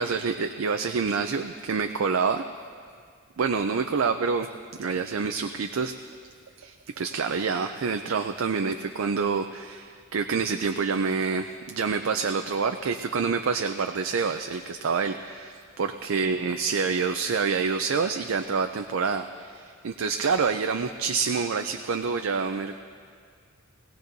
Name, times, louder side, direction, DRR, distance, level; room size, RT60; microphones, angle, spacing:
voice 1, 0.0-2.4 3.4-4.5 4.8-5.9 6.6-22.8, right 5 dB, 75° right, 7 dB, 0.5 m, -27 dB
21.0 x 16.5 x 2.7 m, 2.1 s
head